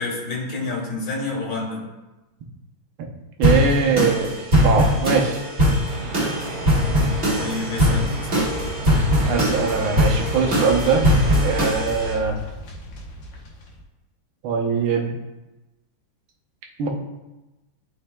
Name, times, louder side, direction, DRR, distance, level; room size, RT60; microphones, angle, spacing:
voice 1, 0.0-1.8 7.3-8.2, left 3 dB, 50° left, -4 dB, 2.2 m, -28 dB
sound 1, 3.4-12.1, equal, 35° right, 1.8 m, -21 dB
voice 2, 3.4-5.4 9.3-11.1 11.4-12.4 14.4-15.2 16.8-16.9, right 5 dB, 85° right, 1 dB, 1.7 m, -22 dB
sound 2, 5.9-11.7, right 2 dB, 60° right, 2.1 m, -34 dB
sound 3, 8.4-13.8, left 1 dB, 65° left, 1.6 m, -35 dB
11.5 x 4.6 x 2.2 m, 1.1 s
omnidirectional pair, 2.2 m